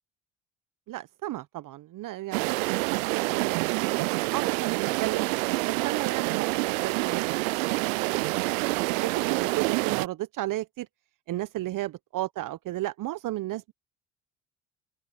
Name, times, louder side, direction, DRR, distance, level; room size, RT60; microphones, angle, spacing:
voice 1, 0.9-5.2 5.6-8.2 8.8-10.9 11.3-13.7, right 15 dB, 50° right, 1.2 m, -34 dB
sound 1, 2.3-10.1, right 25 dB, 75° right, 0.5 m, -27 dB
open air
hypercardioid pair, 60°, 40 cm